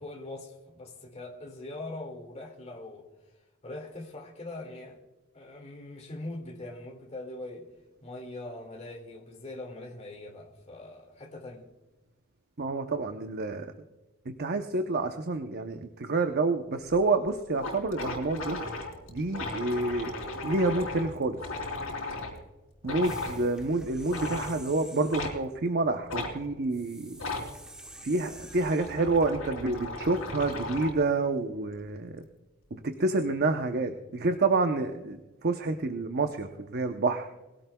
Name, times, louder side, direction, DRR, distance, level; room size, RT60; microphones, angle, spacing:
voice 1, 0.0-3.1 3.6-5.0 5.3-7.7 8.0-11.7, left 2 dB, 30° left, 2 dB, 2.2 m, -42 dB
voice 2, 12.6-13.7 14.3-18.6 19.1-20.1 20.4-21.4 22.8-27.2 28.0-32.3 32.7-37.3, right 3 dB, 50° right, 6 dB, 0.8 m, -28 dB
sound 1, 16.9-17.0 17.3-17.4 17.5-22.4 22.8-23.4 24.0-24.6 25.1-25.4 26.1-26.3 27.1-27.5 28.3-31.0, left 2 dB, 75° left, 4.1 m, -36 dB
sound 2, 23.0-25.4 26.7-29.4, right 1 dB, 5° right, 1.4 m, -49 dB
22.0 x 16.5 x 2.3 m, 1.1 s
head